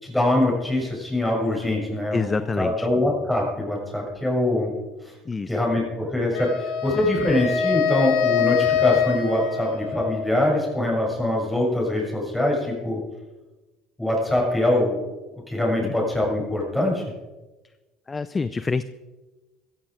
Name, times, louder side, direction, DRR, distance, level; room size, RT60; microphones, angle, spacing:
voice 1, 0.0-4.7 5.0-5.1 5.5-13.0 14.0-15.0 15.5-17.0, left 1 dB, 5° left, -2 dB, 7.0 m, -23 dB
voice 2, 2.1-2.9 5.3-5.6 15.7-15.9 18.1-18.8, left 4 dB, 25° left, 14 dB, 0.6 m, -26 dB
Wind instrument woodwind instrument, 6.3-10.5, left 7 dB, 80° left, 3.0 m, -25 dB
15.5 x 14.5 x 5.1 m, 1.2 s
supercardioid pair, 95°, 0 cm